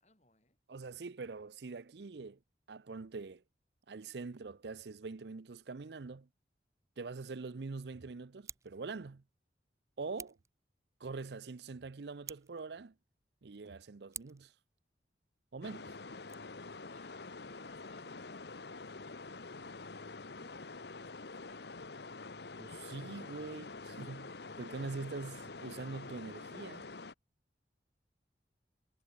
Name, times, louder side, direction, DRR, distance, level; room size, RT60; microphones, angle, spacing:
voice 1, 0.0-0.6 16.7-18.5 19.9-22.1, left 1 dB, 40° left, 6.8 m, -65 dB
voice 2, 0.7-2.4 2.7-3.4 3.9-6.3 7.0-9.2 10.0-10.4 11.0-12.9 13.4-14.5 15.5-15.9 22.6-26.9, right 4 dB, 70° right, 0.6 m, -44 dB
Scissors, 8.4-8.8 10.1-10.5 12.2-12.7 14.1-14.5 16.1-16.3, right 6 dB, 15° right, 0.8 m, -48 dB
sound 1, 15.6-27.1, left 3 dB, 65° left, 1.1 m, -47 dB
head